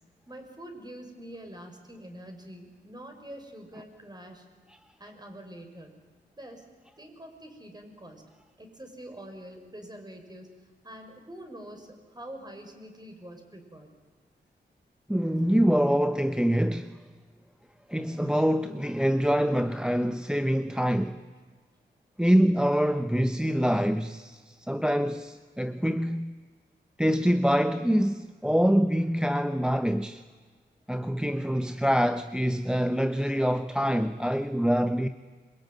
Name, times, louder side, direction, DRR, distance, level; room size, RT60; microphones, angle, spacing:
voice 1, 0.3-4.4 5.0-5.9 6.4-6.6 7.0-8.2 8.6-10.6 10.8-13.9, right 1 dB, 20° right, 6.3 m, -45 dB
voice 2, 15.1-17.0 17.9-21.2 22.2-26.4 27.0-30.2 30.9-35.1, equal, 5° right, 0.9 m, -25 dB
26.5 x 23.0 x 9.5 m
cardioid pair, 70°, 19 cm